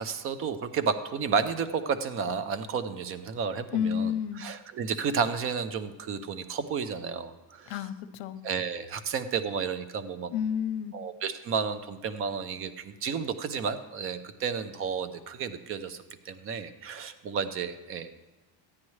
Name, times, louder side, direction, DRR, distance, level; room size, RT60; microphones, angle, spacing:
voice 1, 0.0-4.1 4.4-7.7 8.4-10.3 10.9-16.0 16.3-18.1, right 6 dB, 30° right, 12 dB, 0.5 m, -32 dB
voice 2, 3.7-4.4 7.7-8.4 10.3-11.0, left 8 dB, 70° left, 11 dB, 0.8 m, -30 dB
14.5 x 9.7 x 3.1 m, 1.2 s
cardioid pair, 180°, 47 cm